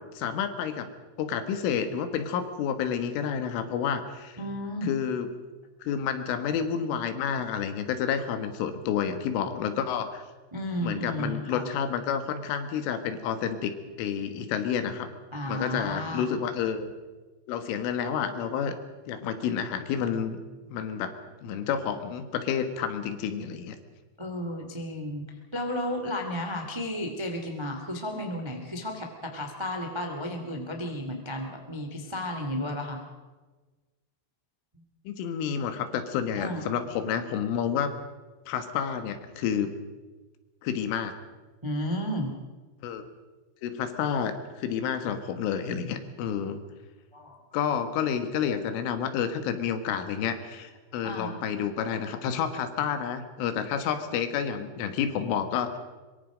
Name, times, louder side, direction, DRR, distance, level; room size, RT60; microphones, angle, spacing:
voice 1, 0.2-0.9 1.2-4.4 4.8-5.3 5.8-10.2 10.8-15.1 15.5-16.9 17.5-18.7 19.1-20.4 20.7-21.1 21.4-23.8 35.1-38.0 38.5-39.7 40.6-41.2 42.8-43.0 43.6-46.6 47.5-55.8, left 8 dB, 85° left, 9 dB, 4.0 m, -29 dB
voice 2, 4.4-4.9 10.5-11.7 15.3-16.3 24.2-25.2 25.5-33.0 36.4-36.7 41.6-42.3 47.1-47.3 51.0-51.4, left 1 dB, 20° right, 3 dB, 0.7 m, -33 dB
24.0 x 23.5 x 5.1 m, 1.3 s
omnidirectional pair, 5.6 m